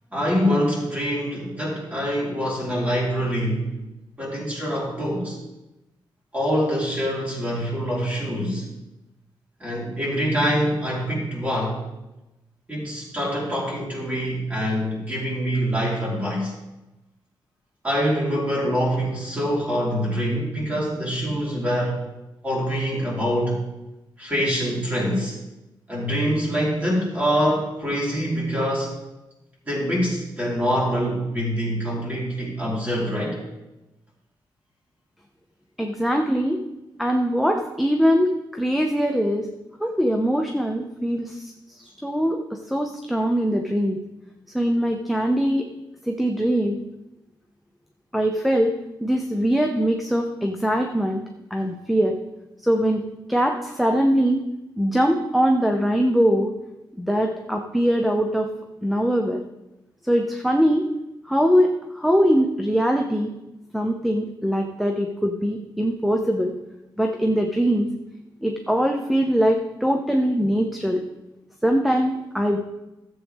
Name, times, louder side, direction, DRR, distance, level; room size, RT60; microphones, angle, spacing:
voice 1, 0.1-3.7 4.2-5.4 6.3-8.7 9.6-11.8 12.7-16.5 17.8-22.0 22.4-23.6 24.2-25.4 25.9-29.0 29.7-33.4, equal, 15° right, -5 dB, 4.1 m, -25 dB
voice 2, 35.8-36.6 37.0-39.5 39.8-44.0 44.5-45.7 46.1-46.8 48.1-51.2 51.5-52.2 52.6-54.4 54.8-56.5 57.0-58.5 58.8-59.4 60.1-60.9 61.3-63.3 63.7-66.5 67.0-67.9 68.4-71.0 71.6-72.6, equal, ahead, 2 dB, 0.7 m, -22 dB
13.5 x 7.9 x 3.6 m, 0.97 s
wide cardioid pair, 105°, 9 cm